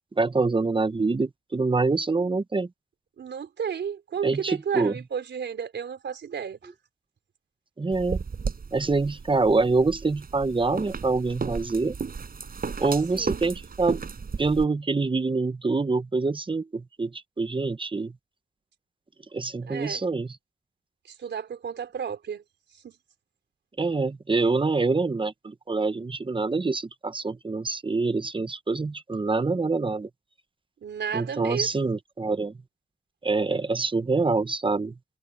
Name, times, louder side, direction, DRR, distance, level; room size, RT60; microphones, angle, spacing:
voice 1, 0.2-2.7 4.2-4.9 7.8-8.2 8.7-12.0 12.8-14.0 14.4-18.1 19.3-20.3 23.8-30.1 31.1-32.5 33.2-34.9, right 3 dB, 25° right, 1.1 m, -25 dB
voice 2, 3.2-6.7 13.1-13.4 19.7-20.0 21.1-22.4 22.8-22.9 30.8-31.9, right 7 dB, 70° right, 4.3 m, -33 dB
sound 1, 7.9-14.6, right 5 dB, 50° right, 7.3 m, -34 dB
cardioid pair, 65°, 19 cm